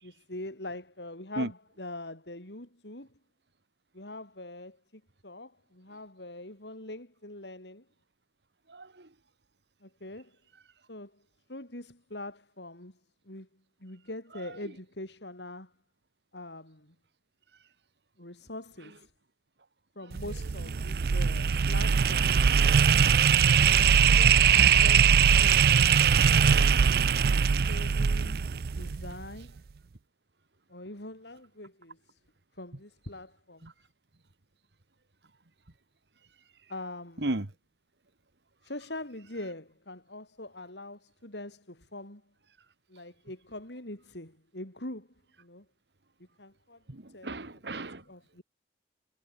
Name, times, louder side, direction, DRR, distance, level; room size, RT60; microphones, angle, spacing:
voice 1, 0.0-3.1 3.9-7.8 9.8-10.3 10.9-11.1 11.5-13.0 13.3-13.5 13.8-15.7 16.3-16.9 18.2-19.1 20.0-22.4 23.6-25.7 27.2-28.4 28.7-29.6 30.7-32.2 32.6-33.7 36.7-37.3 38.6-42.2 42.9-45.1 45.4-45.6 46.4-46.8 47.1-47.4 48.1-48.4, left 2 dB, 85° left, 5.8 m, -43 dB
voice 2, 8.7-9.1 33.6-33.7 37.2-37.5 46.9-48.0, right 2 dB, 80° right, 1.8 m, -34 dB
sound 1, 20.1-29.3, right 7 dB, 60° right, 0.4 m, -22 dB
head